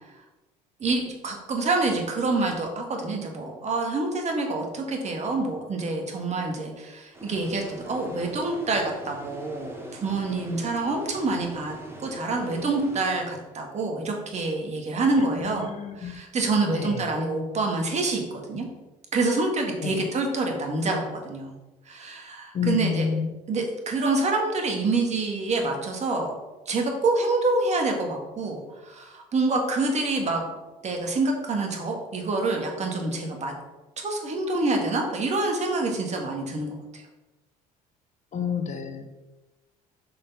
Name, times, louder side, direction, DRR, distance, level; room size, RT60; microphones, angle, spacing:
voice 1, 0.8-15.7 16.0-18.2 18.5-18.7 19.1-21.6 21.9-23.1 23.5-26.3 26.7-30.4 30.8-33.5 34.0-37.0, right 3 dB, 40° right, 2 dB, 2.1 m, -27 dB
sound 1, 7.1-13.8, equal, 15° right, 1.9 m, -42 dB
voice 2, 15.4-16.1 16.7-17.0 19.8-20.0 22.5-23.3 38.3-39.0, left 7 dB, 45° left, 7 dB, 1.0 m, -29 dB
6.7 x 5.2 x 5.5 m, 1.1 s
supercardioid pair, 80°, 17 cm